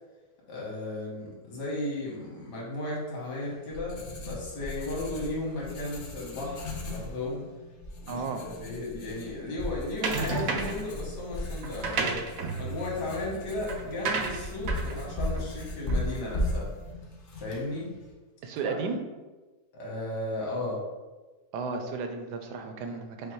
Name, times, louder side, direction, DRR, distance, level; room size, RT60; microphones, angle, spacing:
voice 1, 0.5-7.4 8.0-12.2 12.6-16.7 17.4-17.9 18.6-18.8 19.7-20.8, left 2 dB, 85° left, -3 dB, 1.8 m, -35 dB
Writing, 3.3-18.1, left 1 dB, 50° left, 0.6 m, -37 dB
voice 2, 8.1-8.4 18.4-19.0 21.5-23.3, right 4 dB, 85° right, 5 dB, 1.2 m, -33 dB
sound 1, 10.0-10.9 11.6-16.3, right 4 dB, 65° right, 0.9 m, -33 dB
5.3 x 2.2 x 4.5 m, 1.2 s
omnidirectional pair, 1.8 m